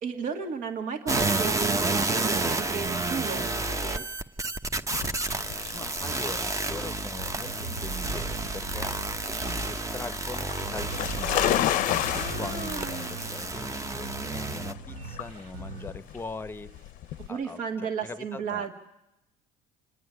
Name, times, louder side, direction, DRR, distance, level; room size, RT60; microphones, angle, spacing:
voice 1, 0.0-3.6 3.8-4.0 12.1-13.3 17.3-18.7, right 6 dB, 60° right, 3 dB, 2.0 m, -34 dB
sound 1, 1.1-14.7, right 3 dB, 20° right, 1.0 m, -30 dB
sound 2, 4.9-17.3, left 13 dB, 60° left, 0.6 m, -33 dB
voice 2, 5.7-9.1 9.5-11.5 12.4-16.7 17.3-17.6 18.0-18.7, left 3 dB, 15° left, 13 dB, 0.8 m, -41 dB
sound 3, 7.2-16.3 16.7-17.5, right 3 dB, 80° right, 4.2 m, -41 dB
28.0 x 9.4 x 9.8 m, 0.90 s
supercardioid pair, 95°, 16 cm